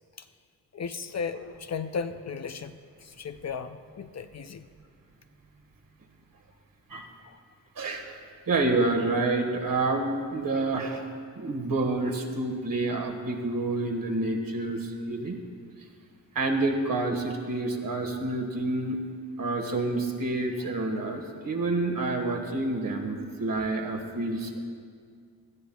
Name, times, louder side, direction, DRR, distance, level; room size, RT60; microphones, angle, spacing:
voice 1, 0.7-4.6 7.2-7.4, left 5 dB, 45° left, 9 dB, 0.5 m, -35 dB
voice 2, 7.8-8.2 8.5-11.1 11.3-15.4 16.3-19.0 19.4-24.6, right 2 dB, 55° right, 2 dB, 1.6 m, -28 dB
18.5 x 13.0 x 2.3 m, 2.1 s
cardioid pair, 70°, 39 cm